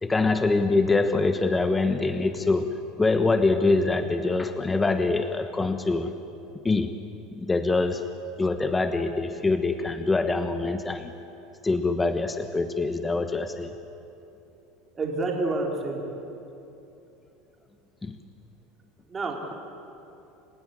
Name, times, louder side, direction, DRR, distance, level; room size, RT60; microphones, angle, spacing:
voice 1, 0.0-2.7 3.0-6.1 6.6-6.9 7.3-8.0 8.4-11.1 11.6-13.7 18.0-18.2, left 3 dB, 15° left, 8 dB, 1.1 m, -24 dB
voice 2, 14.9-16.0 19.1-19.5, right 2 dB, 20° right, 0 dB, 4.2 m, -28 dB
28.5 x 16.5 x 9.9 m, 2.8 s
supercardioid pair, 140°, 0 cm